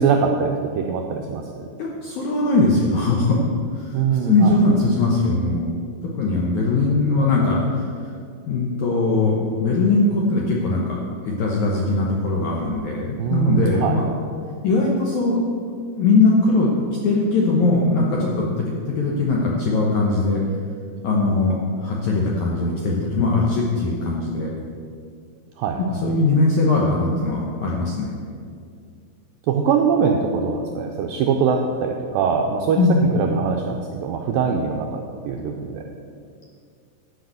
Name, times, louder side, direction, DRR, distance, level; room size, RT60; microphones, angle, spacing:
voice 1, 0.0-1.7 3.9-4.6 13.2-14.0 25.6-25.8 29.5-32.8 33.1-35.8, right 6 dB, 85° right, 2 dB, 2.0 m, -22 dB
voice 2, 1.8-3.4 3.7-5.7 6.1-7.9 8.5-11.0 11.2-14.1 14.6-15.4 16.0-16.7 17.0-20.4 21.0-24.5 25.8-28.1 32.7-33.2, left 3 dB, 75° left, -3 dB, 1.8 m, -20 dB
11.5 x 5.5 x 7.8 m, 2.3 s
omnidirectional pair, 4.8 m